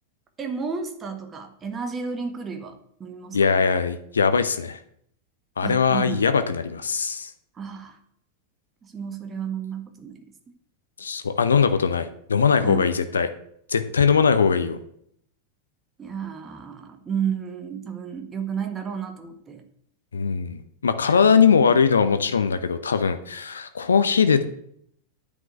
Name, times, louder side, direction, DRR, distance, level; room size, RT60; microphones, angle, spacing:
voice 1, 0.4-3.6 5.6-6.2 7.5-8.0 8.8-10.3 12.6-12.9 16.0-19.6, right 6 dB, 20° right, 6 dB, 1.6 m, -32 dB
voice 2, 3.3-4.8 5.6-7.3 11.0-13.3 13.7-14.8 20.1-24.4, left 6 dB, 70° left, 10 dB, 0.8 m, -21 dB
9.6 x 5.3 x 8.0 m, 0.68 s
figure-of-eight pair, 90°, 0 cm